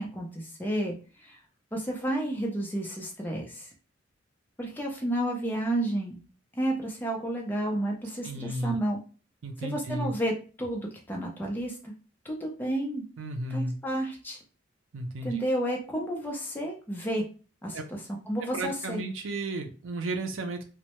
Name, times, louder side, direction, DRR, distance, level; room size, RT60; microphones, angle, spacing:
voice 1, 0.0-1.4 1.7-3.7 4.6-6.2 6.5-9.0 9.6-10.3 10.6-11.9 12.2-13.0 13.5-14.4 15.2-17.3 17.6-18.0 18.3-19.0, right 1 dB, 10° left, -1 dB, 0.5 m, -31 dB
voice 2, 8.2-8.8 9.4-10.1 13.2-13.8 14.9-15.4 17.7-17.8 18.5-20.6, right 2 dB, 80° right, 4 dB, 0.5 m, -33 dB
2.1 x 2.0 x 2.8 m, 0.36 s
head